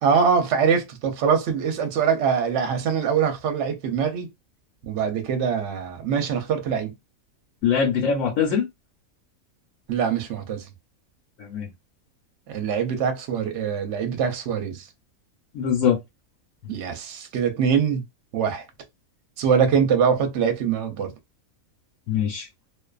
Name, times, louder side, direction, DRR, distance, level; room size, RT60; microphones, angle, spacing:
voice 1, 0.0-4.3 4.8-6.9 9.9-10.7 12.5-14.9 16.7-18.0 18.3-18.6 19.4-21.1, right 6 dB, 60° right, 0.8 m, -23 dB
voice 2, 7.6-8.7 11.4-11.7 15.5-16.0 22.1-22.5, left 7 dB, 70° left, 1.1 m, -22 dB
2.5 x 2.4 x 2.3 m
omnidirectional pair, 1.5 m